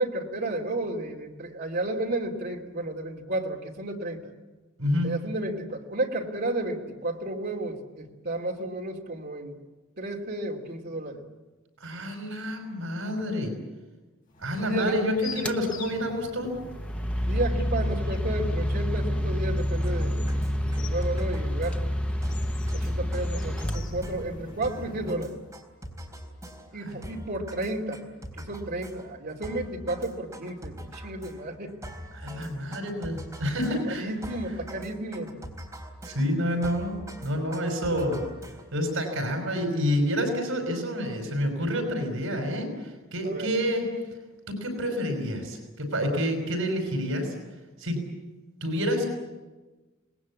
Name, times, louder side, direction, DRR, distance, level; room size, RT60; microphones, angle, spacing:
voice 1, 0.0-4.3 5.0-9.5 10.0-11.2 14.6-15.0 17.2-20.3 20.8-21.8 22.7-25.4 26.7-28.0 28.4-31.8 33.9-35.3 43.2-43.5, right 1 dB, 50° right, 1 dB, 2.9 m, -32 dB
voice 2, 4.8-5.1 11.8-13.6 14.4-16.5 26.8-27.0 32.1-34.1 36.0-38.2 38.7-43.9 44.5-47.3 47.8-48.0 48.6-49.0, equal, 70° right, 4 dB, 5.4 m, -28 dB
sound 1, 14.3-25.1, left 3 dB, 40° left, 7.2 m, -45 dB
sound 2, 15.4-15.6 16.6-24.6, equal, 5° left, 0.9 m, -28 dB
sound 3, 19.8-38.9, equal, 15° right, 4.0 m, -43 dB
27.0 x 20.0 x 8.5 m, 1.2 s
head